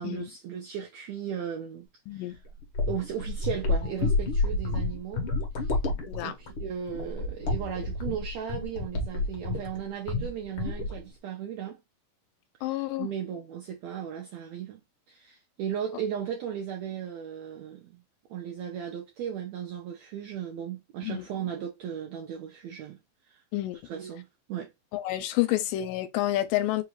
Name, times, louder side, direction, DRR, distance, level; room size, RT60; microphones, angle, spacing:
voice 1, 0.0-2.4 2.8-5.3 5.6-5.7 6.2-11.8 12.6-14.8 15.1-18.0 18.3-23.0 23.3-23.4 23.8-24.7, right 8 dB, 80° right, 1.5 m, -36 dB
sound 1, 2.3-9.8 10.1-10.3 10.6-11.0, left 3 dB, 65° left, 1.3 m, -29 dB
voice 2, 12.6-13.1 21.0-21.3 23.5-23.8 24.9-26.8, left 15 dB, 80° left, 2.3 m, -29 dB
5.2 x 2.4 x 3.1 m
omnidirectional pair, 4.0 m